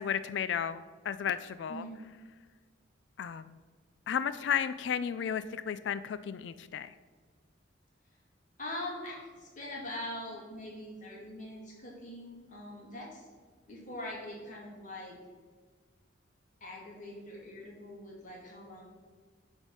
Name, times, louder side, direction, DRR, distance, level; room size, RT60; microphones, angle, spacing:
voice 1, 0.0-1.8 3.2-3.6 4.1-6.9, left 8 dB, 65° left, 13 dB, 0.3 m, -33 dB
voice 2, 1.7-2.0 8.6-13.3 13.7-15.2 16.6-18.9, left 1 dB, 40° left, -3 dB, 2.3 m, -43 dB
9.5 x 3.5 x 6.2 m, 1.5 s
head